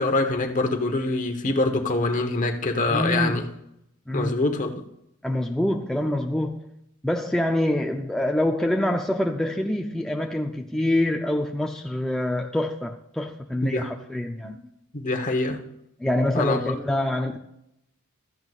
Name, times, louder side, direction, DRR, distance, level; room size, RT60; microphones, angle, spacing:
voice 1, 0.0-3.4 4.1-4.8 13.6-13.9 14.4-14.6 14.9-15.6 16.3-16.7, left 2 dB, 35° left, 6 dB, 1.1 m, -25 dB
voice 2, 2.9-3.4 4.1-4.4 5.2-6.7 7.0-14.5 16.0-17.4, left 1 dB, 5° left, 0 dB, 0.5 m, -25 dB
16.0 x 13.5 x 2.5 m, 0.80 s
head